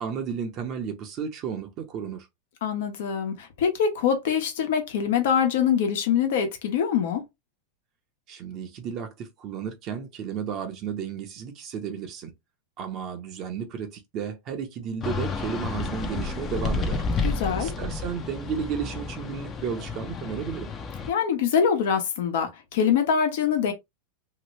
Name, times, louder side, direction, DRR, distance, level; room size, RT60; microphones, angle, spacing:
voice 1, 0.0-2.3 8.3-12.3 12.8-17.0 17.6-20.7, right 7 dB, 40° right, 0.8 m, -33 dB
voice 2, 2.6-7.2 17.2-17.7 21.1-23.7, left 7 dB, 75° left, 1.1 m, -24 dB
sound 1, 15.0-21.1, left 4 dB, 25° left, 0.7 m, -31 dB
2.9 x 2.5 x 3.1 m
supercardioid pair, 130°, 0 cm